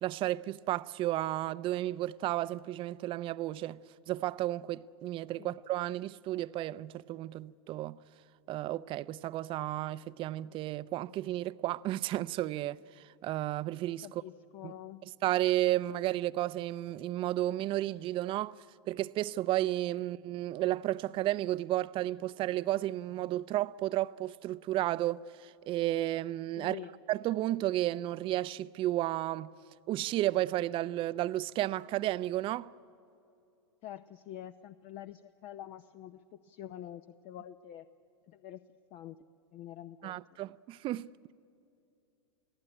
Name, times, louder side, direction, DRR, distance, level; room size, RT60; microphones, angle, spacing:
voice 1, 0.0-3.8 4.1-8.0 8.5-14.2 14.6-14.7 15.2-18.6 18.9-26.8 27.1-29.5 29.9-32.7 40.0-41.1, right 15 dB, 35° right, 0.6 m, -32 dB
voice 2, 14.0-15.0 26.6-26.9 33.8-37.9 38.3-38.6 38.9-39.2 39.5-40.2, left 11 dB, 45° left, 0.7 m, -46 dB
29.5 x 17.0 x 10.0 m
hypercardioid pair, 110°, 15 cm